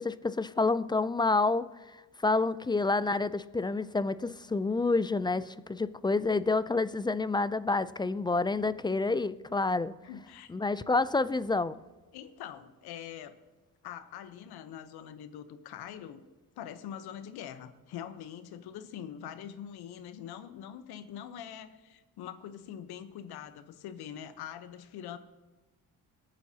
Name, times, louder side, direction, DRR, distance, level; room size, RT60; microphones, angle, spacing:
voice 1, 0.0-1.7 2.2-9.9 10.5-11.8, left 3 dB, 15° left, 0.3 m, -28 dB
voice 2, 10.0-10.5 12.1-13.3 13.8-16.2 16.6-25.2, left 9 dB, 85° left, 1.0 m, -44 dB
22.5 x 8.9 x 2.8 m
cardioid pair, 90°, 37 cm